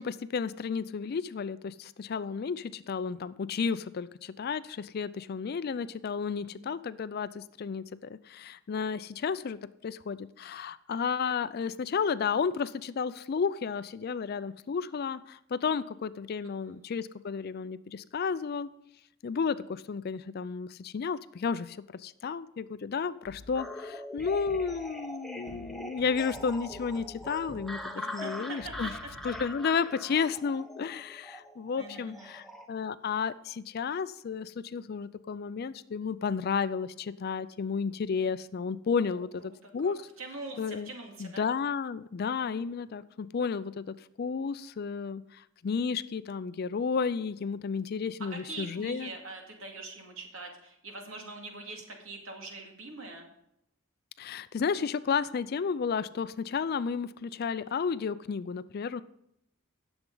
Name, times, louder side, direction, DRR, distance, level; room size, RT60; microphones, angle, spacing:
voice 1, 0.0-18.7 19.2-28.9 29.2-40.0 40.6-40.9 41.2-49.1 54.2-59.0, left 5 dB, 50° left, 15 dB, 0.4 m, -32 dB
sound 1, 23.2-23.7 24.2-24.9 25.5-27.9 28.6-29.4, left 1 dB, 55° right, 2.7 m, -50 dB
sound 2, 23.5-32.7, left 1 dB, ahead, 0.8 m, -42 dB
voice 2, 28.0-28.7 31.8-32.3 39.1-39.2 39.6-41.5 48.3-53.3, right 2 dB, 80° right, 2 dB, 2.3 m, -43 dB
18.0 x 7.1 x 3.9 m, 0.78 s
head